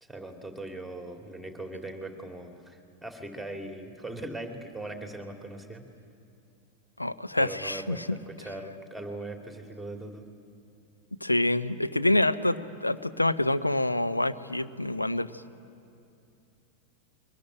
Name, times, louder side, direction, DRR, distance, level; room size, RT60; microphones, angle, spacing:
voice 1, 0.0-5.8 7.3-10.3, right 2 dB, ahead, 3 dB, 2.5 m, -40 dB
voice 2, 7.0-8.2 11.2-15.3, left 1 dB, 85° left, 12 dB, 0.8 m, -26 dB
22.5 x 20.5 x 9.9 m, 2.6 s
figure-of-eight pair, 90°, 0 cm